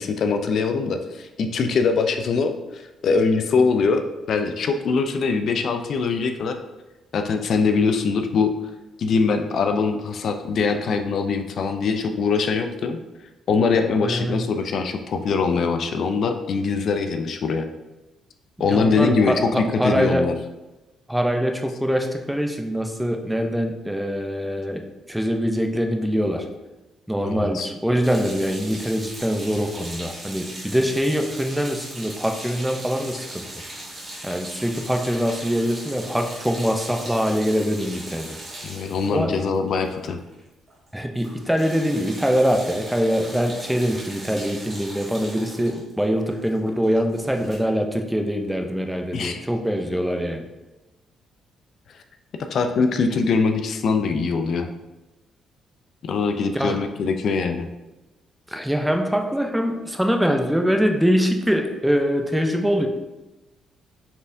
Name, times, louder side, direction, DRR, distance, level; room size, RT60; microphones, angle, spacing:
voice 1, 0.0-6.6 7.1-8.5 9.0-13.0 13.5-17.7 18.6-20.3 27.2-27.7 38.6-40.2 49.1-49.4 52.5-54.7 56.0-57.7, left 4 dB, 60° left, 7 dB, 0.3 m, -22 dB
voice 2, 14.0-14.5 18.6-20.3 21.1-26.5 27.1-33.5 34.2-38.4 39.1-39.4 40.9-50.5 56.5-56.8 58.5-62.9, equal, 5° right, 4 dB, 0.4 m, -23 dB
sound 1, 28.0-40.4 40.7-40.9 41.1-47.6, right 1 dB, 30° right, 1.3 m, -39 dB
4.2 x 3.4 x 2.5 m, 1.1 s
cardioid pair, 90°, 0 cm